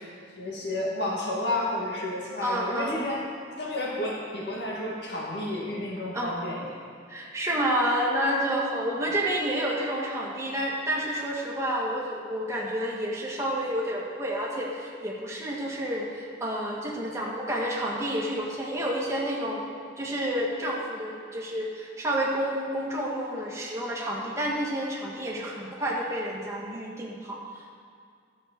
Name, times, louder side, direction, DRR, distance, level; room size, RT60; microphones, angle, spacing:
voice 1, 0.4-3.2 3.6-6.8, left 1 dB, 65° left, -4 dB, 2.1 m, -31 dB
voice 2, 2.4-3.0 6.1-6.3 7.1-19.6 20.0-27.4, equal, 15° right, -4 dB, 1.8 m, -29 dB
12.0 x 6.5 x 6.8 m, 2.2 s
head